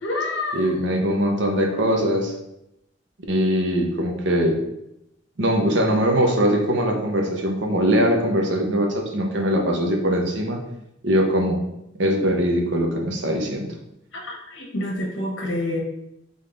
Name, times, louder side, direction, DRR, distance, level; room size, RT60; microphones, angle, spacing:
voice 1, 0.0-0.7 14.1-15.8, left 2 dB, 80° left, 0 dB, 1.1 m, -28 dB
voice 2, 0.5-2.3 3.3-4.6 5.4-10.6 11.0-11.6 12.0-13.7, equal, 70° right, 1 dB, 0.8 m, -21 dB
3.7 x 3.6 x 3.8 m, 0.83 s
head